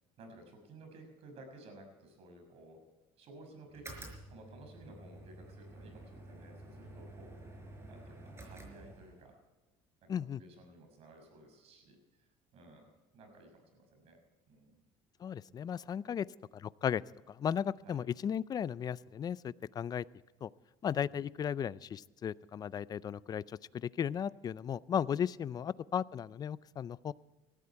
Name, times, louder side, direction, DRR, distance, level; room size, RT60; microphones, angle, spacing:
voice 1, 0.2-2.8 3.2-7.4 7.9-9.4 10.0-12.9 13.1-14.2 14.5-14.8 15.7-15.8 16.0-16.2 17.8-18.0 21.1-21.5, right 2 dB, 60° right, 5 dB, 6.1 m, -55 dB
sound 1, 3.7-9.4, right 1 dB, 20° right, 5.0 m, -51 dB
voice 2, 10.1-10.4 15.2-16.2 16.6-17.0 17.3-20.0 20.4-20.5 20.8-23.4 23.7-27.1, left 8 dB, 35° left, 19 dB, 0.5 m, -35 dB
19.0 x 13.5 x 4.6 m, 1.2 s
cardioid pair, 115°, 12 cm